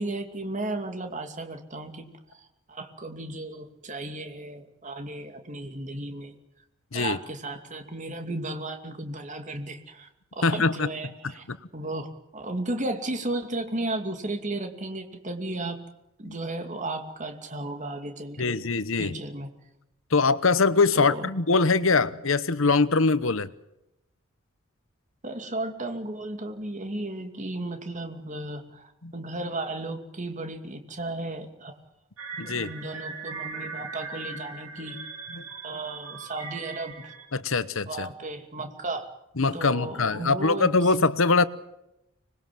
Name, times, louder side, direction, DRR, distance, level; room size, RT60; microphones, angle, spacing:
voice 1, 0.0-6.4 6.9-11.4 11.7-15.8 16.2-18.6 19.0-19.5 21.0-21.3 25.2-31.7 32.4-35.0 35.6-37.1 37.9-39.1 39.5-40.7, right 2 dB, 35° right, 2.5 m, -34 dB
voice 2, 10.4-10.9 11.2-11.6 16.3-16.4 18.4-19.2 20.1-23.5 29.0-29.1 32.4-32.7 35.3-35.8 37.3-38.1 39.4-41.4, left 4 dB, 65° left, 1.0 m, -23 dB
sound 1, 32.2-37.3, right 5 dB, 80° right, 3.7 m, -39 dB
25.5 x 21.0 x 7.7 m
head